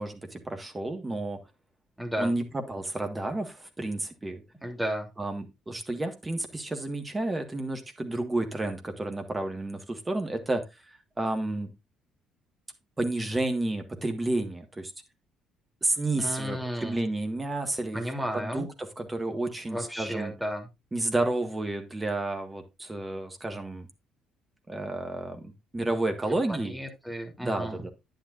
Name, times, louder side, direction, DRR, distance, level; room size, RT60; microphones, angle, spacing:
voice 1, 0.0-1.4 2.2-4.4 5.2-10.6 11.2-11.7 13.0-14.9 15.8-18.0 18.3-20.3 20.9-23.9 24.7-26.8 27.4-27.9, right 2 dB, 20° right, 6 dB, 1.6 m, -31 dB
voice 2, 2.0-2.3 4.6-5.1 16.2-17.0 17.9-18.7 19.7-20.7 26.3-27.8, equal, 5° right, 3 dB, 3.0 m, -33 dB
9.8 x 9.3 x 2.5 m, 0.24 s
figure-of-eight pair, 50°, 0 cm